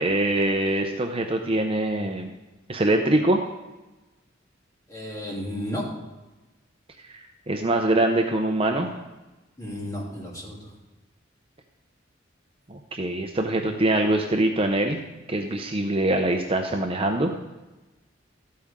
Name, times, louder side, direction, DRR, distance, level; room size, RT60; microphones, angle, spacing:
voice 1, 0.0-2.3 2.7-3.4 7.1-8.9 12.7-15.0 15.3-17.3, right 1 dB, 30° right, 3 dB, 0.7 m, -23 dB
voice 2, 4.9-5.9 9.6-10.7, equal, 15° left, -5 dB, 2.9 m, -33 dB
13.5 x 8.6 x 3.7 m, 1.1 s
head